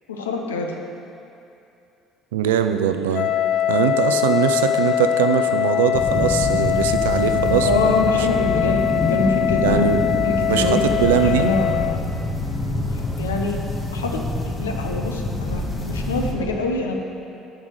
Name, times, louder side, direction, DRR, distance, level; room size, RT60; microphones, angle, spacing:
voice 1, 0.1-0.8 7.6-9.9 10.2-10.8 11.2-12.0 12.9-13.6 13.9-16.9, left 3 dB, 90° left, 2 dB, 0.6 m, -26 dB
voice 2, 2.3-3.3 3.7-8.0 9.6-10.0 10.5-11.5, right 9 dB, 80° right, 8 dB, 0.4 m, -21 dB
Wind instrument woodwind instrument, 3.1-12.0, left 11 dB, 55° left, 0.4 m, -22 dB
sound 1, 5.9-16.3, left 1 dB, 20° left, 1.2 m, -26 dB
7.3 x 4.7 x 6.6 m, 2.7 s
hypercardioid pair, 60°, 0 cm